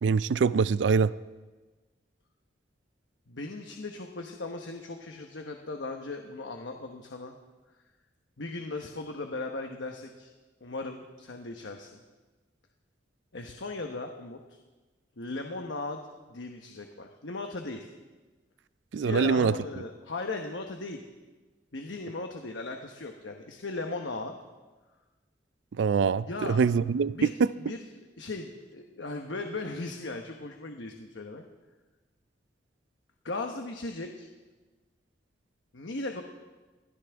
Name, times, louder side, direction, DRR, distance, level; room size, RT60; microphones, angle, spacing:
voice 1, 0.0-1.1 18.9-19.5 25.8-27.5, right 5 dB, 75° right, 17 dB, 0.4 m, -24 dB
voice 2, 3.3-7.4 8.4-10.3 10.6-12.0 13.3-14.4 15.2-17.9 19.0-21.0 21.7-24.4 26.3-26.6 27.1-27.3 27.6-27.8 28.2-31.4 33.2-34.3 35.7-36.2, left 2 dB, 80° left, 4 dB, 1.0 m, -37 dB
22.0 x 15.5 x 3.5 m, 1.3 s
head